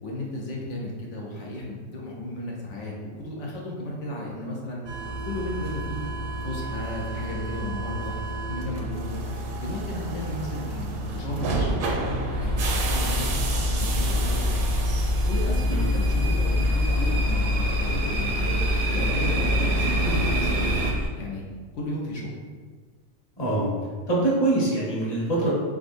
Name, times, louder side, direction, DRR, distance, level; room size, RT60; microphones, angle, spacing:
voice 1, 0.0-4.8 5.3-6.1 6.4-8.1 8.5-9.2 9.6-14.6 15.3-18.6 18.9-20.7 21.2-21.4 21.7-22.3, left 1 dB, 75° left, -3 dB, 1.0 m, -34 dB
sound 1, 4.9-20.9, right 2 dB, 60° right, 0.6 m, -29 dB
sound 2, 12.3-21.1, left 2 dB, 45° left, 1.7 m, -26 dB
voice 2, 23.4-23.7 24.1-25.5, right 2 dB, 20° left, -6 dB, 1.0 m, -24 dB
3.7 x 3.6 x 2.5 m, 1.5 s
omnidirectional pair, 1.3 m